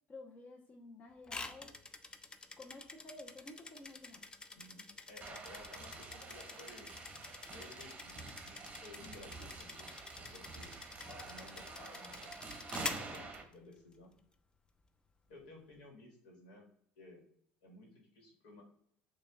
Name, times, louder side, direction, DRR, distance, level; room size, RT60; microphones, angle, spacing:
voice 1, 0.1-1.7 2.6-4.3, left 2 dB, 35° left, 1 dB, 0.9 m, -52 dB
sound 1, 1.3-13.9, left 3 dB, 20° left, 0.4 m, -48 dB
voice 2, 4.5-6.9 7.5-10.7 11.1-12.3 13.0-14.1 15.3-16.7 17.0-17.2 17.6-18.6, left 2 dB, 85° left, 0 dB, 1.3 m, -56 dB
sound 2, 5.2-13.4, right 3 dB, 25° right, 0.8 m, -48 dB
6.4 x 2.4 x 2.2 m, 0.65 s
supercardioid pair, 90°, 4 cm